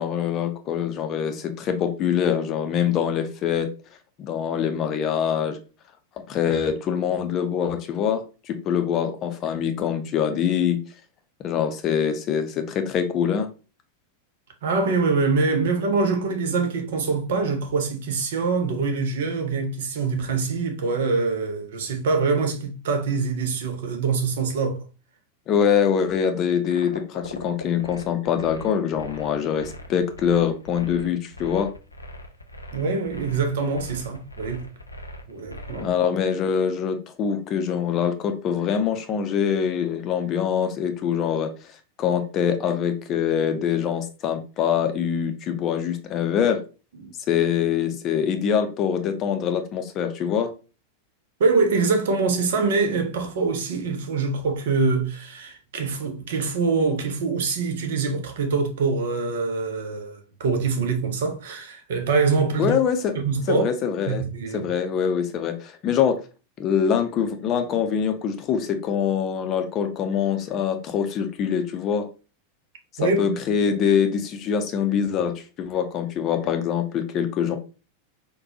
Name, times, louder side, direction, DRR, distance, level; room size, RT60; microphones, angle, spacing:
voice 1, 0.0-3.7 4.2-5.6 6.3-10.8 11.4-13.5 25.5-31.7 35.8-41.5 42.0-46.6 47.3-50.5 62.6-63.1 63.5-64.2 64.5-66.2 66.6-72.1 73.2-77.6, left 8 dB, 35° left, 0.5 m, -24 dB
voice 2, 14.6-24.8 32.7-34.7 35.3-35.9 47.0-47.1 51.4-62.8 63.1-63.6 64.1-64.7 73.0-73.4, right 4 dB, 55° right, 0.6 m, -24 dB
sound 1, 26.7-36.0, left 1 dB, 85° left, 0.4 m, -40 dB
4.1 x 2.2 x 2.7 m
figure-of-eight pair, 90°, 0 cm